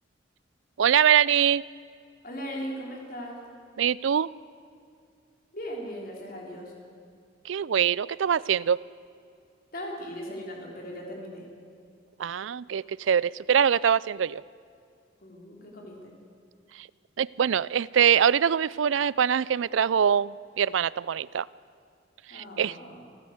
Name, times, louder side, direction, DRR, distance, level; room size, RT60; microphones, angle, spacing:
voice 1, 0.8-1.7 3.8-4.3 7.4-8.8 12.2-14.4 16.8-16.9 17.2-21.5 22.3-22.8, right 8 dB, 90° right, 21 dB, 0.4 m, -23 dB
voice 2, 2.2-3.3 5.5-6.7 9.7-11.4 15.2-16.1 22.3-23.1, equal, 50° left, -1 dB, 3.6 m, -38 dB
26.5 x 15.0 x 7.9 m, 2.4 s
head